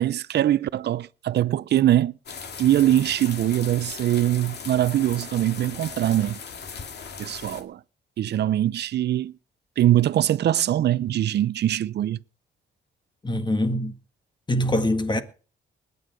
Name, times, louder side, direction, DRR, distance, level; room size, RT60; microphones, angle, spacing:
voice 1, 0.0-2.1 2.6-6.4 7.2-7.8 8.2-9.3 9.8-12.2, right 12 dB, 55° right, 0.6 m, -22 dB
sound 1, 2.3-7.6, left 6 dB, 55° left, 2.2 m, -38 dB
voice 2, 13.2-14.0 14.5-15.2, left 1 dB, 20° left, 1.8 m, -23 dB
20.0 x 9.5 x 5.1 m
cardioid pair, 90°, 20 cm